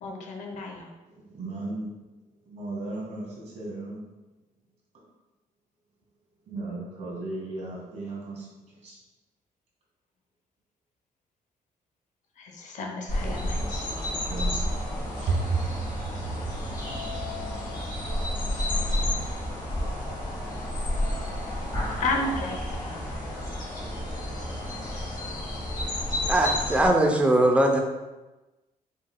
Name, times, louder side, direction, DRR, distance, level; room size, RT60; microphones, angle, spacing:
voice 1, 0.0-0.9 12.4-13.9 15.2-15.3 22.0-23.2, left 2 dB, 55° left, 2 dB, 0.7 m, -33 dB
voice 2, 1.1-2.0 2.4-4.0 6.5-9.0 13.9-15.3, right 2 dB, 50° right, -4 dB, 1.4 m, -37 dB
sound 1, 13.1-26.9, left 1 dB, 25° left, 1.5 m, -31 dB
sound 2, 14.4-25.7, right 4 dB, 70° right, 1.0 m, -37 dB
voice 3, 26.3-27.8, right 1 dB, 10° right, 2 dB, 0.4 m, -20 dB
5.0 x 3.9 x 2.2 m, 1.1 s
cardioid pair, 160°, 15 cm